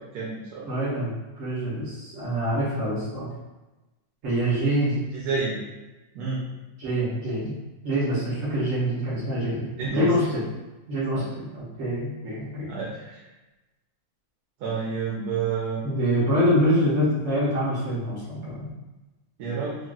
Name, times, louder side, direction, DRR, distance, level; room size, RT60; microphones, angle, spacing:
voice 1, 0.1-0.6 5.1-5.6 6.1-6.4 9.8-10.1 11.1-11.2 12.7-12.9 14.6-15.8 19.4-19.8, right 5 dB, 85° right, -5 dB, 1.1 m, -29 dB
voice 2, 0.7-3.3 4.2-5.0 6.8-7.5 7.8-10.5 10.9-12.7 15.8-18.8, equal, 60° right, -9 dB, 1.3 m, -25 dB
3.7 x 2.3 x 2.3 m, 1.1 s
omnidirectional pair, 1.6 m